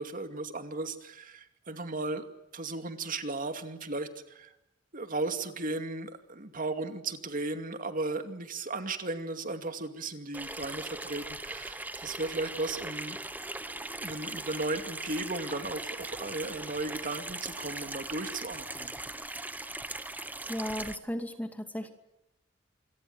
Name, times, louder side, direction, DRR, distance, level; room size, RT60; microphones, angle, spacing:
voice 1, 0.0-2.2 2.5-4.5 4.9-13.2 13.7-19.0, right 2 dB, 45° right, 8 dB, 2.5 m, -36 dB
Water tap faucet / Sink (filling or washing), 10.3-21.0, right 2 dB, 10° right, 1.2 m, -39 dB
voice 2, 20.5-21.9, equal, 10° left, 7 dB, 2.4 m, -35 dB
27.5 x 24.0 x 7.9 m, 0.88 s
head